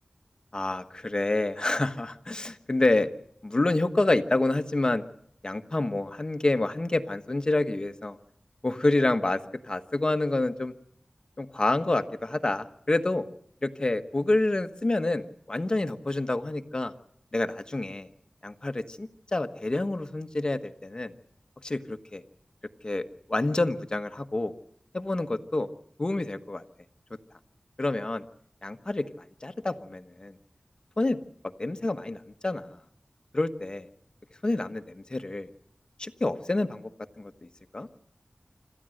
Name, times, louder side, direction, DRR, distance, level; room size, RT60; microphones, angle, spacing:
voice 1, 0.5-3.1 3.4-5.0 5.4-8.2 8.6-10.7 11.4-13.2 13.6-16.9 17.3-18.1 18.4-21.1 21.6-22.2 22.8-23.0 23.3-24.5 24.9-25.7 26.0-26.6 27.8-28.2 28.6-29.0 29.4-30.3 31.0-31.2 31.6-32.2 32.4-32.6 33.3-33.9 34.4-35.5 36.0-36.9 37.2-37.3 37.7-37.9, left 2 dB, 40° left, 8 dB, 1.3 m, -28 dB
26.5 x 14.0 x 7.8 m, 0.70 s
wide cardioid pair, 65°, 2 cm